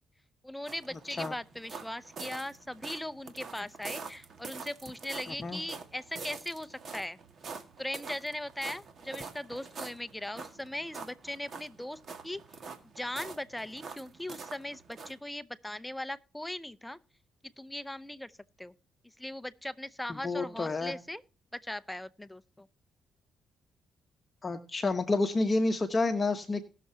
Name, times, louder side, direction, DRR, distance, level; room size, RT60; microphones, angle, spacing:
voice 1, 0.4-7.2 7.8-12.4 13.0-17.0 17.6-18.3 18.6-18.7 19.2-21.2 21.5-22.7, left 1 dB, 5° left, 0.6 m, -39 dB
sound 1, 0.6-15.2, right 4 dB, 55° right, 1.8 m, -45 dB
voice 2, 20.1-20.9 24.4-26.7, left 3 dB, 30° left, 1.0 m, -29 dB
20.0 x 6.7 x 2.8 m
cardioid pair, 90°, 0 cm